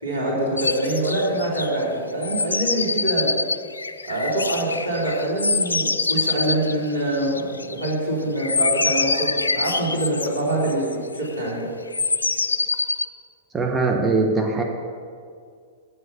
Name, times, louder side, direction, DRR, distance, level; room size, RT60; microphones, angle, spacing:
voice 1, 0.0-3.3 4.0-11.7, right 1 dB, 85° right, -5 dB, 3.1 m, -25 dB
sound 1, 0.6-1.8 2.2-7.9 8.4-11.3 11.9-13.0, left 3 dB, 80° left, 0.3 m, -25 dB
voice 2, 13.5-14.6, right 3 dB, 15° right, 2 dB, 0.9 m, -21 dB
7.8 x 7.6 x 7.0 m, 2.2 s
figure-of-eight pair, 100°, 0 cm